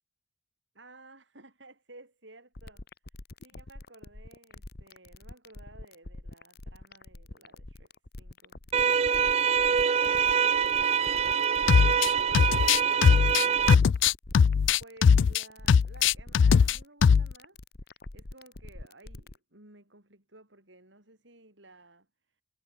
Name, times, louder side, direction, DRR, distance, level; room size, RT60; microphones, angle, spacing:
voice 1, 0.7-2.8 3.4-9.5 10.0-11.0 11.5-12.3 12.7-13.8 14.8-17.6 17.8-22.4, right 2 dB, 70° right, 6.8 m, -55 dB
sound 1, 2.5-19.4, left 2 dB, 55° left, 1.3 m, -45 dB
sound 2, 8.7-13.7, right 7 dB, 35° right, 0.3 m, -25 dB
sound 3, 11.7-12.1 12.3-15.4 15.7-16.8 17.0-17.3, left 6 dB, 75° left, 0.4 m, -20 dB
head